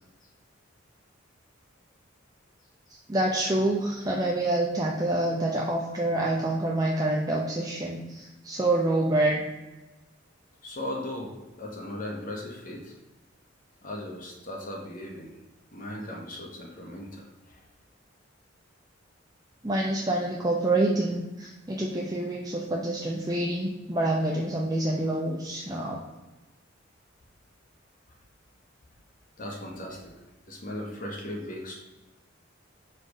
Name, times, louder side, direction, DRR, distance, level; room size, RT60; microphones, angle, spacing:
voice 1, 3.1-9.4 19.6-26.0, right 1 dB, 20° right, -2 dB, 0.6 m, -27 dB
voice 2, 10.6-12.9 13.8-15.3 15.7-17.6 29.4-30.1 30.5-31.7, left 1 dB, 45° left, 0 dB, 1.2 m, -37 dB
5.1 x 4.4 x 4.9 m, 1.1 s
head